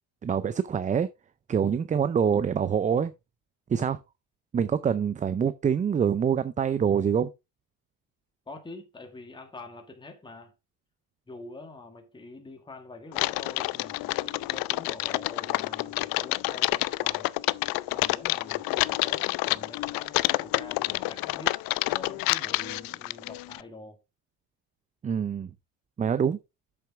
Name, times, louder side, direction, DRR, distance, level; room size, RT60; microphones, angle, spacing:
voice 1, 0.2-1.1 1.5-3.1 3.7-4.0 4.5-7.3 25.0-25.5 26.0-26.4, right 7 dB, 20° right, 0.4 m, -25 dB
voice 2, 8.5-10.5 11.3-17.3 17.9-21.6 21.9-24.0, left 2 dB, 10° left, 1.8 m, -45 dB
Typing, 13.1-23.6, left 20 dB, 65° left, 0.5 m, -28 dB
8.0 x 6.9 x 3.5 m
cardioid pair, 115°, 38 cm